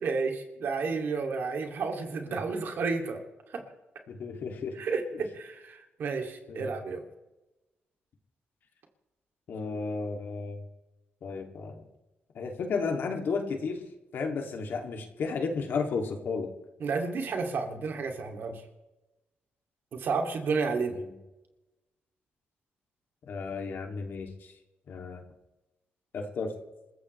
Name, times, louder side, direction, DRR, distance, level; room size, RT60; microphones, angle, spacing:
voice 1, 0.0-3.2 3.5-3.6 4.8-7.0 16.8-18.6 19.9-21.0, right 4 dB, 65° right, 3 dB, 2.6 m, -31 dB
voice 2, 4.1-4.7 6.5-6.7 9.5-10.6 11.2-11.8 12.3-13.8 14.1-16.5 21.0-21.1 23.3-24.5 24.9-25.2 26.1-26.5, left 4 dB, 65° left, 2 dB, 2.6 m, -33 dB
27.5 x 15.0 x 3.3 m, 1.0 s
cardioid pair, 125°, 4 cm